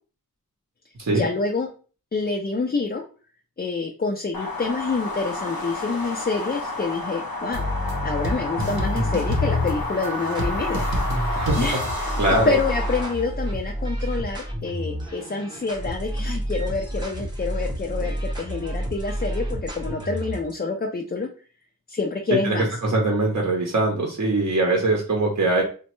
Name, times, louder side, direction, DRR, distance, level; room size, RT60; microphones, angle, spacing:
voice 1, 1.1-1.7 2.1-3.0 3.6-10.9 11.6-12.2 12.5-21.3 21.9-22.8, left 4 dB, 30° left, 2 dB, 0.4 m, -27 dB
sound 1, 4.3-13.1, left 2 dB, 75° left, 0.6 m, -31 dB
sound 2, 7.5-13.3, left 1 dB, 85° right, 0.8 m, -28 dB
sound 3, 9.7-20.5, right 1 dB, 10° right, 0.7 m, -30 dB
voice 2, 12.2-12.6 22.4-22.6 22.8-25.6, right 2 dB, 50° right, 0 dB, 0.7 m, -22 dB
3.1 x 2.2 x 3.0 m, 0.38 s
wide cardioid pair, 65°, 36 cm